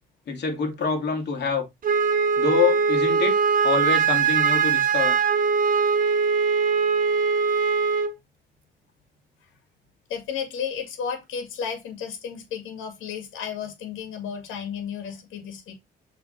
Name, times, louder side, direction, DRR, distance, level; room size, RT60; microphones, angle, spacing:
voice 1, 0.3-1.7 2.4-5.2, left 5 dB, 60° left, 2.7 m, -26 dB
Wind instrument woodwind instrument, 1.8-8.1, right 5 dB, 45° right, 1.2 m, -21 dB
voice 2, 10.1-15.7, left 7 dB, 85° left, 2.0 m, -33 dB
6.7 x 3.6 x 4.3 m
cardioid pair, 90°, 20 cm